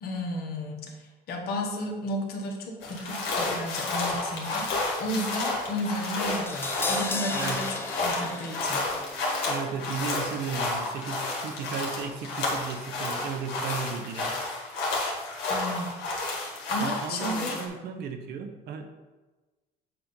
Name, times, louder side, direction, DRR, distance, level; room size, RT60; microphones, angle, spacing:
voice 1, 0.0-7.8 8.0-8.9 15.5-15.9 16.7-17.6, left 1 dB, 65° left, 2 dB, 1.2 m, -33 dB
sound 1, 2.8-17.7, left 2 dB, 85° left, 1.5 m, -31 dB
Crash cymbal, 6.3-12.4 12.7-12.8, left 2 dB, 15° left, 0.5 m, -38 dB
voice 2, 9.5-14.4 16.8-18.9, right 6 dB, 75° right, 6 dB, 0.8 m, -35 dB
7.5 x 2.5 x 5.3 m, 1.2 s
cardioid pair, 110°, 17 cm